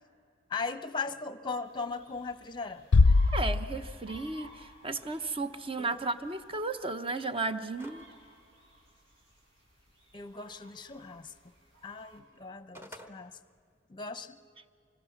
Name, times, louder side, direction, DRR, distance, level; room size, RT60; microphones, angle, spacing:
voice 1, 0.5-2.8 5.8-6.1 10.1-11.3 11.8-13.4 13.9-14.4, left 4 dB, 25° left, 13 dB, 0.8 m, -38 dB
sound 1, 1.6-12.2, equal, 80° right, 7.4 m, -57 dB
Bass drum, 2.9-4.3, left 3 dB, 75° left, 0.5 m, -23 dB
voice 2, 3.3-8.1, right 3 dB, 30° right, 11 dB, 0.9 m, -34 dB
sound 2, 7.8-8.1 8.5-8.6 12.4-13.1, equal, 10° right, 1.2 m, -48 dB
25.5 x 22.0 x 7.2 m, 2.4 s
head